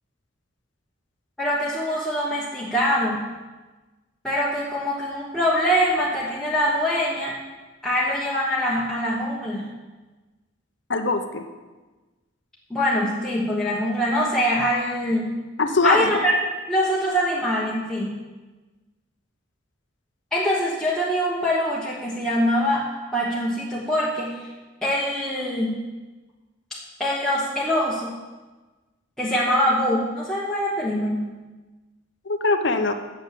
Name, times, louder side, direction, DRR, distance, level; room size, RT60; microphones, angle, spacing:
voice 1, 1.4-3.3 4.2-7.4 7.8-9.7 12.7-15.3 15.8-16.4 16.7-18.3 20.3-22.9 23.1-24.5 24.8-25.8 27.0-28.1 29.2-31.3, equal, 5° left, -7 dB, 1.2 m, -23 dB
voice 2, 10.9-11.5 15.6-16.2 32.3-32.9, left 3 dB, 60° left, 6 dB, 0.7 m, -22 dB
9.0 x 7.3 x 7.5 m, 1.2 s
head